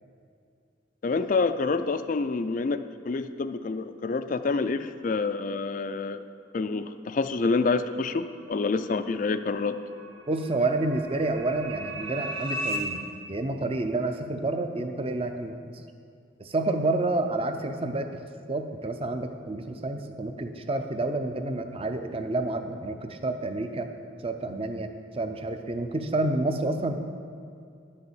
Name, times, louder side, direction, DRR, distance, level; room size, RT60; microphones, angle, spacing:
voice 1, 1.0-6.2 6.5-9.8, left 4 dB, 40° left, 11 dB, 0.3 m, -27 dB
sound 1, 8.5-12.8, right 1 dB, 85° right, 1.5 m, -37 dB
voice 2, 10.3-15.6 16.4-18.2 18.5-23.9 24.2-27.0, right 2 dB, 30° right, 7 dB, 0.6 m, -29 dB
11.0 x 6.6 x 7.1 m, 2.4 s
head